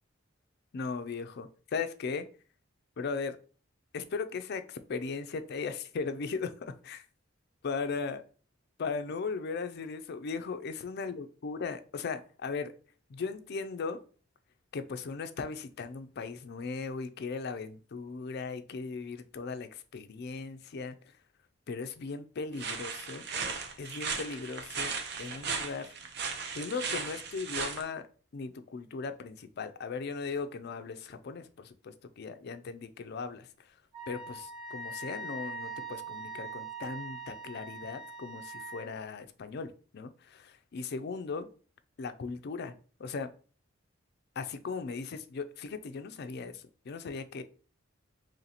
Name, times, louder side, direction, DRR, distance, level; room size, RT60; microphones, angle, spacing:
voice 1, 0.7-2.3 3.0-3.4 3.9-7.0 7.6-8.2 8.8-12.7 13.1-14.0 14.7-21.0 21.7-23.3 23.8-24.9 25.2-25.9 26.5-28.0 28.3-33.5 34.1-41.5 42.0-42.7 43.0-43.3 44.4-47.4, left 4 dB, 55° left, 10 dB, 0.4 m, -38 dB
sound 1, 22.6-27.8, right 5 dB, 55° right, 0.6 m, -36 dB
Wind instrument woodwind instrument, 33.9-38.9, right 3 dB, 20° right, 0.8 m, -42 dB
3.1 x 2.8 x 4.0 m, 0.39 s
head